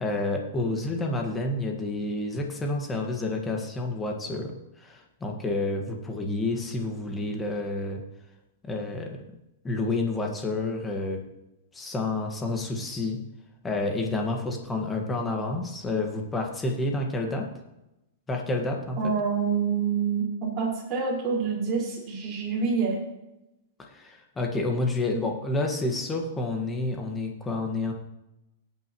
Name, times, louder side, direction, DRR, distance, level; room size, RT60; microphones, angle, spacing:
voice 1, 0.0-8.0 8.7-9.2 9.6-11.2 11.7-13.2 13.6-17.5 18.3-19.1 23.9-27.9, left 2 dB, 10° left, 2 dB, 1.8 m, -29 dB
voice 2, 19.0-23.0, right 5 dB, 30° right, -4 dB, 5.1 m, -27 dB
18.5 x 9.1 x 3.2 m, 0.92 s
supercardioid pair, 150°, 0 cm